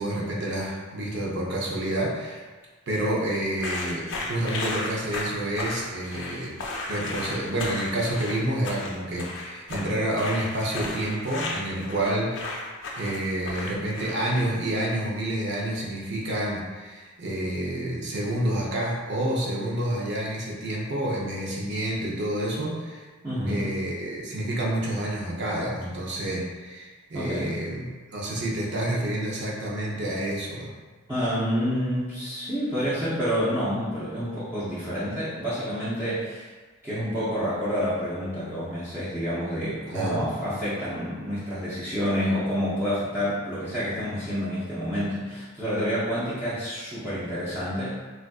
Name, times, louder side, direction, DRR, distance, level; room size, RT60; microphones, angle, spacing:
voice 1, 0.0-2.4 2.9-12.5 13.0-23.0 23.5-30.7 39.9-40.4, right 1 dB, 55° right, -3 dB, 0.6 m, -29 dB
sound 1, 3.6-14.4, left 2 dB, 60° left, 0.4 m, -34 dB
voice 2, 23.2-23.7 27.1-27.6 31.1-36.5 36.8-48.0, equal, 10° right, -13 dB, 0.5 m, -28 dB
3.4 x 2.4 x 2.3 m, 1.4 s
head